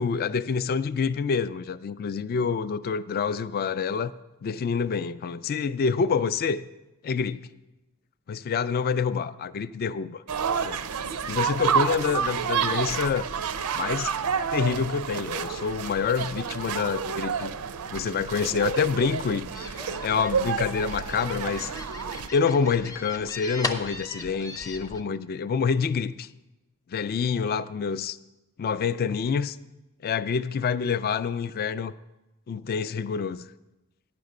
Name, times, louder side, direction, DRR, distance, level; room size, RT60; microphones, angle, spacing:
voice 1, 0.0-4.1 4.4-6.6 7.0-7.4 8.3-10.2 10.6-10.8 11.3-13.3 13.7-14.2 14.5-17.5 17.9-19.6 20.0-21.7 22.3-26.3 26.9-28.1 28.6-29.6 30.0-31.9 32.5-33.4, left 6 dB, 45° left, 15 dB, 0.3 m, -27 dB
sound 1, 10.3-22.3, right 7 dB, 80° right, 0.5 m, -29 dB
sound 2, 19.5-25.0, left 2 dB, 15° left, 0.7 m, -38 dB
9.4 x 6.0 x 6.6 m, 1.0 s
head